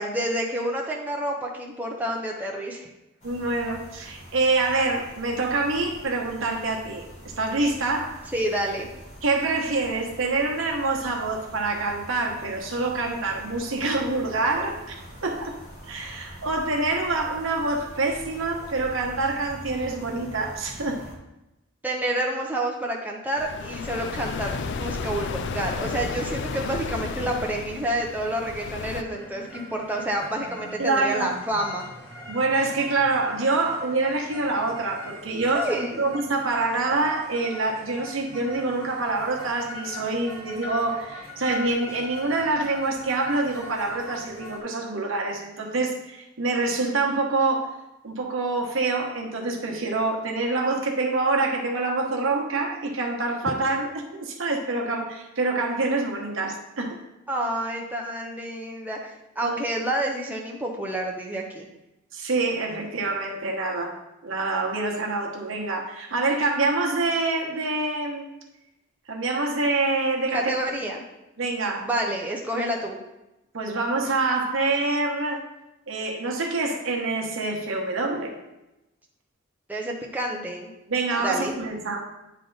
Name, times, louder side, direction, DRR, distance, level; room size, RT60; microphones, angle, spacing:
voice 1, 0.0-2.9 8.3-8.9 21.8-31.9 35.5-36.0 57.3-61.7 70.3-71.0 71.8-73.0 79.7-80.7 81.2-81.5, right 1 dB, 10° right, -1 dB, 0.7 m, -29 dB
sound 1, 3.2-21.2, equal, 35° left, 1.2 m, -44 dB
voice 2, 3.2-8.2 9.2-15.6 15.9-21.0 30.8-31.3 32.3-47.7 48.0-57.0 59.4-59.6 62.1-68.2 69.1-70.5 71.4-71.9 73.5-75.4 75.9-78.3 80.9-82.0, right 3 dB, 70° right, 0 dB, 1.1 m, -26 dB
sound 2, 23.4-29.0, left 4 dB, 60° left, 0.4 m, -32 dB
sound 3, 29.0-44.6, left 1 dB, 15° left, 2.0 m, -41 dB
9.2 x 3.4 x 3.9 m, 0.95 s
head